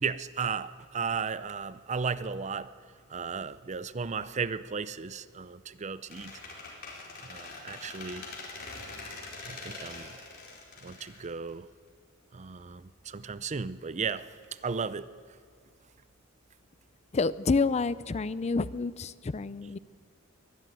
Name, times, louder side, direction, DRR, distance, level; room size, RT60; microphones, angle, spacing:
voice 1, 0.0-2.7 3.1-6.3 7.2-8.3 9.4-10.1 10.8-11.7 12.3-14.3 14.6-15.1, right 5 dB, 35° right, 0.5 m, -35 dB
Squeak, 6.1-11.9, left 3 dB, 50° left, 4.5 m, -43 dB
voice 2, 17.1-19.8, left 4 dB, 30° left, 0.5 m, -28 dB
23.0 x 13.5 x 9.3 m
head